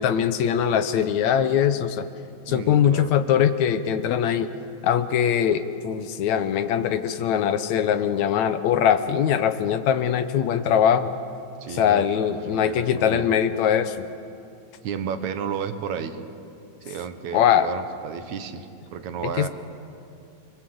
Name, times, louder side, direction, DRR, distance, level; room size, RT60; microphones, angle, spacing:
voice 1, 0.0-2.1 2.5-4.5 4.8-11.1 11.7-14.1 17.3-17.7 19.4-19.5, left 9 dB, 75° left, 10 dB, 2.2 m, -22 dB
voice 2, 2.5-3.1 11.6-12.0 12.5-13.3 14.8-16.2 16.9-19.5, right 7 dB, 75° right, 9 dB, 2.5 m, -32 dB
29.5 x 22.0 x 7.9 m, 2.5 s
omnidirectional pair, 3.4 m